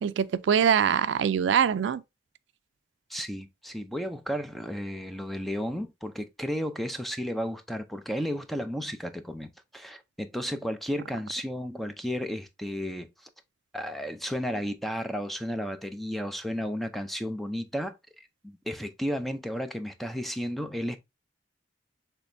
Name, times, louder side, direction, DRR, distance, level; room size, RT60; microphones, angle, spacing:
voice 1, 0.0-2.0, right 7 dB, 75° right, 0.3 m, -23 dB
voice 2, 3.1-13.1 13.7-21.0, equal, ahead, 0.4 m, -33 dB
6.2 x 3.3 x 2.6 m
head